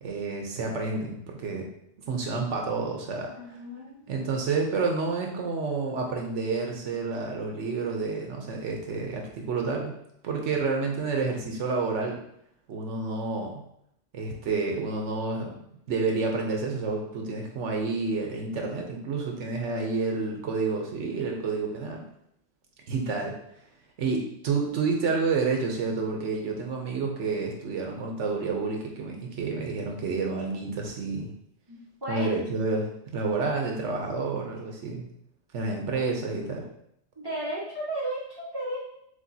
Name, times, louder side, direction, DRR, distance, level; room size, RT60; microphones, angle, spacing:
voice 1, 0.0-1.7 2.1-3.3 4.1-10.0 10.2-12.2 12.7-13.6 14.1-15.5 15.9-22.0 22.9-23.4 24.0-31.3 32.1-35.1 35.5-36.6, right 4 dB, 75° right, 1 dB, 1.0 m, -29 dB
voice 2, 3.3-4.1 31.7-32.6 37.2-38.8, right 1 dB, 20° right, -10 dB, 1.5 m, -34 dB
5.0 x 3.8 x 2.7 m, 0.74 s
omnidirectional pair, 1.3 m